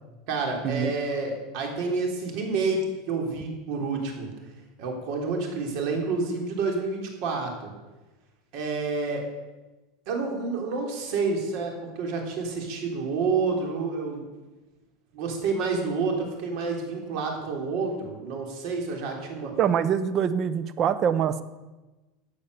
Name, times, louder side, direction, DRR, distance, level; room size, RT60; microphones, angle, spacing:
voice 1, 0.3-2.8 3.1-4.3 4.8-7.7 8.5-9.3 10.1-14.2 15.1-19.5, right 4 dB, 55° right, 2 dB, 3.6 m, -29 dB
voice 2, 19.6-21.4, right 8 dB, 30° right, 14 dB, 0.8 m, -24 dB
15.0 x 8.5 x 6.8 m, 1.1 s
supercardioid pair, 155°, 0 cm